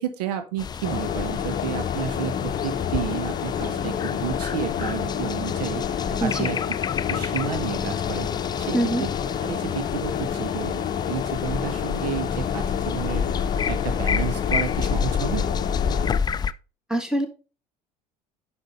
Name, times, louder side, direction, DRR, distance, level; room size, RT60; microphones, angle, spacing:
voice 1, 0.0-6.6 7.1-8.3 8.6-9.1 9.4-13.3 13.7-15.5, right 8 dB, 70° right, 9 dB, 0.9 m, -31 dB
sound 1, 0.6-16.5, left 6 dB, 20° left, 0.3 m, -30 dB
sound 2, 0.8-16.2, left 8 dB, 40° left, 0.8 m, -29 dB
voice 2, 6.2-6.5 8.7-9.0 16.9-17.3, right 1 dB, 5° right, 6 dB, 1.6 m, -24 dB
10.0 x 5.7 x 2.5 m, 0.34 s
figure-of-eight pair, 65°, 21 cm